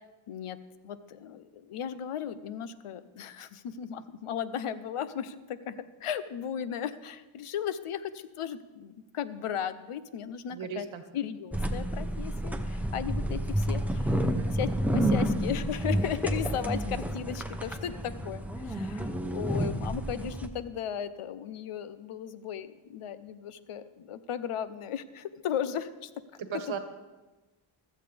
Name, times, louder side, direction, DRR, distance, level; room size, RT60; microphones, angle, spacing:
voice 1, 0.3-0.6 0.8-10.9 11.1-14.2 14.5-26.1, left 9 dB, 90° left, 13 dB, 0.8 m, -36 dB
voice 2, 10.5-11.0 14.2-14.6 26.4-26.8, right 7 dB, 65° right, 8 dB, 1.3 m, -37 dB
sound 1, 11.5-20.5, right 1 dB, 5° right, 0.8 m, -30 dB
15.5 x 13.5 x 3.4 m, 1.2 s
wide cardioid pair, 120°, 49 cm